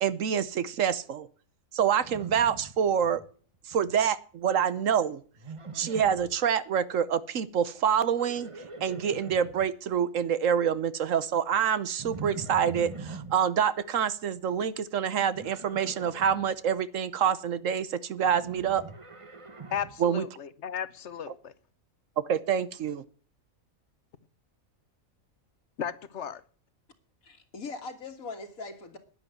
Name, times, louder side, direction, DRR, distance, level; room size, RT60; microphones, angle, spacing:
voice 1, 0.0-1.3 1.7-3.2 3.7-5.2 5.7-8.5 8.8-18.8 20.0-20.3 22.3-23.0, right 8 dB, 70° right, 1.2 m, -26 dB
Livestock farm animals working animals, 2.0-3.3 3.5-4.1 5.4-6.4 7.9-9.7 12.0-13.4 15.3-16.5 18.3-20.0, right 4 dB, 25° right, 1.0 m, -43 dB
voice 2, 19.7-21.5 25.8-26.4, left 8 dB, 60° left, 1.1 m, -35 dB
voice 3, 27.2-29.0, left 3 dB, 80° left, 2.3 m, -40 dB
10.5 x 10.0 x 7.8 m
omnidirectional pair, 1.5 m